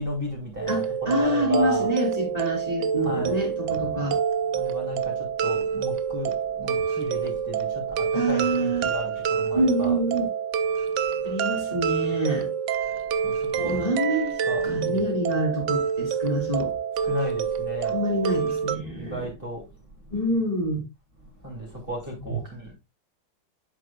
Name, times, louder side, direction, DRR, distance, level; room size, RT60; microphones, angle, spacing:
voice 1, 0.0-1.9 3.0-3.4 4.5-10.0 11.1-11.2 13.2-13.9 14.4-15.0 17.0-18.0 19.0-19.8 20.0-20.1 21.2-22.7, left 1 dB, 30° right, 2.6 m, -34 dB
sound 1, 0.6-18.8, right 7 dB, 90° right, 0.6 m, -27 dB
voice 2, 0.7-4.2 6.7-6.9 8.1-8.8 9.5-10.2 11.2-12.5 13.5-14.3 14.6-16.7 17.8-19.3 20.1-20.8, right 1 dB, 20° left, 2.6 m, -26 dB
8.0 x 6.8 x 2.2 m
omnidirectional pair, 2.1 m